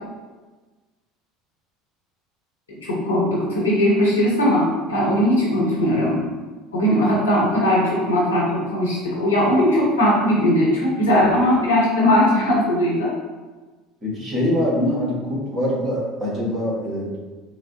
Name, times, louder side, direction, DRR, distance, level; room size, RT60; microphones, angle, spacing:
voice 1, 2.7-6.2 6.7-13.1, left 1 dB, 85° left, -6 dB, 1.3 m, -19 dB
voice 2, 14.0-17.2, left 1 dB, 30° right, -4 dB, 1.5 m, -23 dB
6.0 x 2.1 x 3.1 m, 1.3 s
figure-of-eight pair, 65°, 0 cm